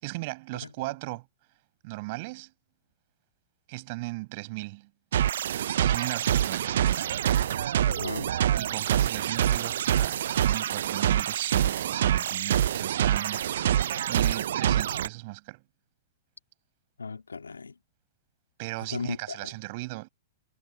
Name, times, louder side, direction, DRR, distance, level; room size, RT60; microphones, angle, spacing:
voice 1, 0.0-1.3 1.8-2.5 3.7-4.9 5.8-8.0 8.6-15.6 18.6-20.1, right 24 dB, 50° right, 6.2 m, -37 dB
sound 1, 5.1-15.1, right 10 dB, 65° right, 0.4 m, -26 dB
voice 2, 7.8-8.3 17.0-17.8 18.9-19.5, left 4 dB, 85° left, 3.1 m, -36 dB
hypercardioid pair, 110°, 0 cm